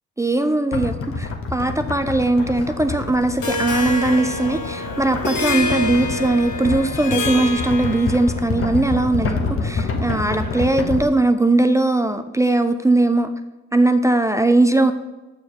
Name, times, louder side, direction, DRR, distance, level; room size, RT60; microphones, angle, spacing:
voice 1, 0.2-13.3 13.7-14.9, right 2 dB, 10° right, 8 dB, 0.4 m, -19 dB
sound 1, 0.7-11.0, left 4 dB, 45° left, 1.1 m, -27 dB
sound 2, 2.3-10.8, left 1 dB, 30° left, 1.4 m, -38 dB
Harp, 3.4-8.4, left 2 dB, 85° left, 1.1 m, -27 dB
6.9 x 6.3 x 3.0 m, 1.1 s
cardioid pair, 75°, 30 cm